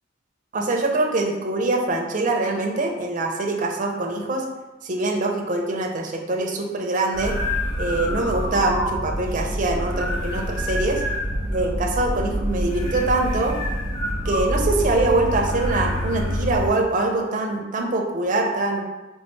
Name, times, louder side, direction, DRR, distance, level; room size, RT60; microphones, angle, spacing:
voice 1, 0.5-4.4 4.8-7.4 7.8-11.0 11.5-13.6 14.2-18.9, right 2 dB, 40° right, 2 dB, 0.6 m, -23 dB
sound 1, 7.1-16.7, equal, 20° left, 1.5 m, -26 dB
4.4 x 3.3 x 3.1 m, 1.1 s
head